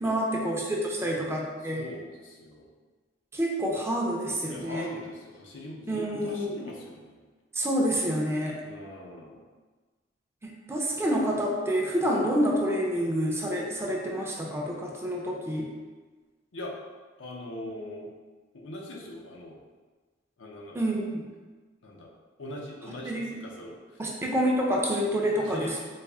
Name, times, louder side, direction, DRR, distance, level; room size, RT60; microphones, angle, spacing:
voice 1, 0.0-1.8 3.3-4.9 5.9-6.5 7.5-8.6 10.4-15.7 20.7-21.1 23.0-23.3 24.0-25.8, equal, 15° right, -2 dB, 0.5 m, -28 dB
voice 2, 1.7-2.7 4.4-7.2 8.6-9.4 16.5-16.7 17.2-18.1 18.5-19.6 20.4-20.8 21.8-22.1 22.4-23.8 25.4-25.8, left 1 dB, 85° left, -1 dB, 0.6 m, -41 dB
4.2 x 2.0 x 3.4 m, 1.3 s
head